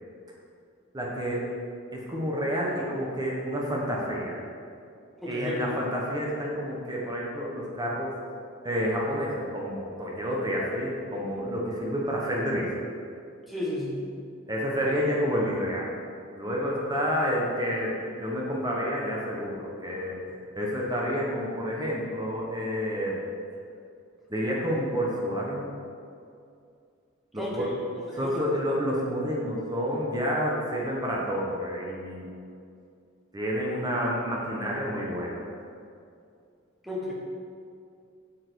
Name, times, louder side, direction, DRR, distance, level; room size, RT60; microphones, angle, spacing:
voice 1, 0.9-1.5 1.9-4.4 5.3-8.1 8.6-12.7 14.5-15.9 16.4-20.2 20.5-23.2 24.3-25.7 27.3-27.7 28.1-32.3 33.3-35.4, equal, 20° right, -3 dB, 1.3 m, -29 dB
voice 2, 5.2-5.6 13.5-14.0 27.4-27.7 28.1-28.4 36.8-37.1, left 1 dB, ahead, -5 dB, 1.5 m, -33 dB
7.9 x 7.7 x 4.7 m, 2.4 s
head